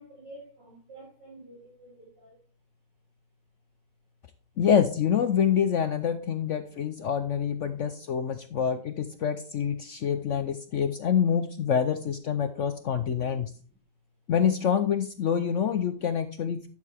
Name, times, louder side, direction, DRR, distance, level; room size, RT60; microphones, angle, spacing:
voice 1, 0.0-2.4 7.7-7.9 8.5-8.6 9.9-10.1 10.5-10.9 13.5-13.6, right 1 dB, 75° right, 5.7 m, -50 dB
voice 2, 4.6-13.5 14.3-16.7, left 8 dB, 65° left, 0.7 m, -26 dB
11.5 x 6.6 x 3.4 m
omnidirectional pair, 1.9 m